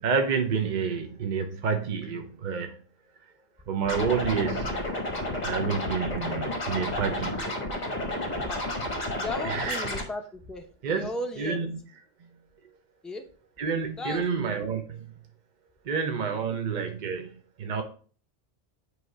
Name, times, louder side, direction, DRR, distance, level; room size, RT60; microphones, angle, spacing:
voice 1, 0.0-2.7 3.7-4.7 5.4-7.4 9.4-9.9 10.8-11.1 11.4-11.7 13.6-15.0 15.9-17.3 17.6-17.8, right 6 dB, 45° right, 5 dB, 0.7 m, -29 dB
Scratching (performance technique), 3.8-10.0, left 1 dB, 35° left, 1.4 m, -31 dB
voice 2, 8.5-8.9 9.2-11.6 13.0-13.2 13.9-14.3 16.5-16.6, left 1 dB, ahead, 4 dB, 0.6 m, -36 dB
7.8 x 3.3 x 4.7 m, 0.42 s
omnidirectional pair, 1.2 m